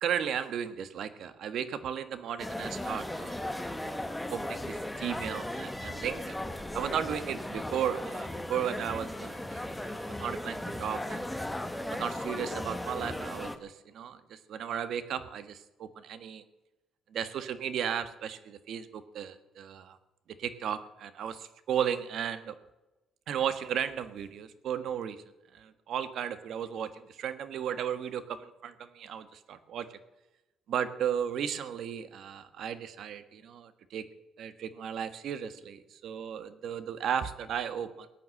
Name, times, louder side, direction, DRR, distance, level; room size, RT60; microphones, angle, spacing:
voice 1, 0.0-3.4 3.8-4.0 4.3-6.3 6.7-11.2 11.9-16.4 17.1-20.0 20.4-22.5 23.3-25.2 25.5-29.9 30.7-34.0 34.4-38.1, right 8 dB, 60° right, 12 dB, 1.5 m, -35 dB
sound 1, 2.4-13.6, left 1 dB, 5° left, 1.2 m, -37 dB
19.0 x 9.4 x 7.8 m, 1.0 s
cardioid pair, 140°, 0 cm